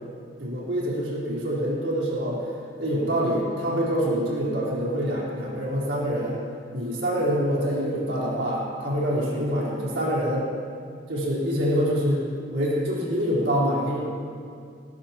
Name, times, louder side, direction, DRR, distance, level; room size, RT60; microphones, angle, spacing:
voice 1, 0.4-2.4 2.8-6.4 6.7-10.5 11.1-12.2 12.5-14.1, equal, 85° right, -6 dB, 4.2 m, -25 dB
18.5 x 16.0 x 3.0 m, 2.3 s
head